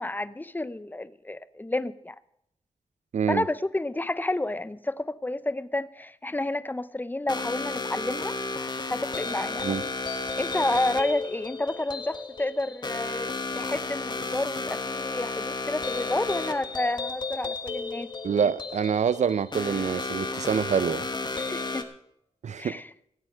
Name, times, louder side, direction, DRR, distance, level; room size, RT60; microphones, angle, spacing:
voice 1, 0.0-2.1 3.3-8.4 8.9-9.7 10.4-13.3 13.6-18.1 21.3-21.9 22.6-22.9, left 2 dB, 15° left, 0.7 m, -30 dB
voice 2, 3.1-3.4 9.6-9.8 18.2-21.1 22.4-22.8, right 7 dB, 75° right, 0.6 m, -26 dB
sound 1, 7.3-21.8, left 3 dB, 35° left, 1.5 m, -33 dB
17.0 x 8.2 x 6.5 m
wide cardioid pair, 85°, 12 cm